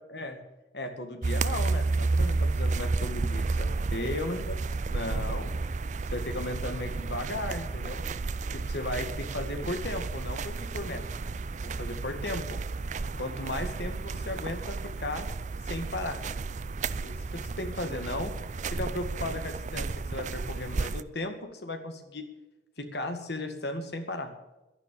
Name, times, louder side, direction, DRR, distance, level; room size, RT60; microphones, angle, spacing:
voice 1, 0.7-4.4 4.9-5.5 6.1-8.0 8.5-11.0 11.6-12.6 13.2-15.3 15.6-16.2 17.0-18.3 18.7-22.3 22.8-24.3, left 1 dB, 60° left, 6 dB, 2.1 m, -35 dB
sound 1, 1.2-21.0, right 3 dB, 40° right, 0.4 m, -32 dB
12.5 x 11.0 x 8.8 m, 1.0 s
head